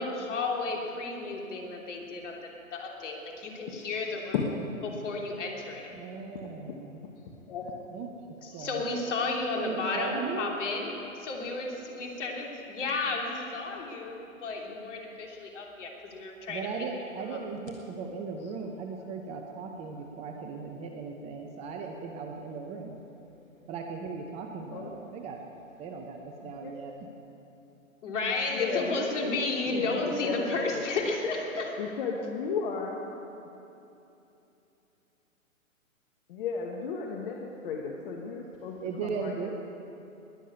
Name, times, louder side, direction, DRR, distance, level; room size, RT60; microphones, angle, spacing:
voice 1, 0.0-2.4 2.7-4.3 4.9-5.9 8.4-16.7 28.0-31.8, left 3 dB, 60° left, 0 dB, 3.0 m, -33 dB
voice 2, 5.9-7.0 7.9-8.1 8.5-8.8 9.6-10.6 11.4-11.5 13.3-13.4 15.7-15.9 16.5-23.0 23.7-25.4 25.8-26.9 38.8-39.5, right 5 dB, 15° right, 3 dB, 0.7 m, -37 dB
voice 3, 7.5-7.9 9.0-9.4 24.7-25.0 26.4-26.7 28.5-30.8 31.8-33.1 36.3-39.5, left 5 dB, 40° left, 0 dB, 1.5 m, -35 dB
20.5 x 7.4 x 8.5 m, 2.8 s
figure-of-eight pair, 125°, 41 cm